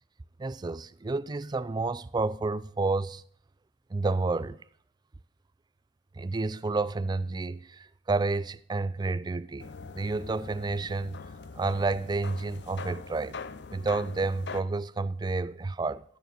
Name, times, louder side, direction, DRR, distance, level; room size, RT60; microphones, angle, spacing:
voice 1, 0.4-3.2 3.9-4.6 6.2-9.7 9.9-11.2 11.6-13.4 13.7-16.0, right 3 dB, 25° right, 0.4 m, -30 dB
sound 1, 9.6-14.6, left 4 dB, 70° left, 0.6 m, -42 dB
13.5 x 6.7 x 6.2 m
head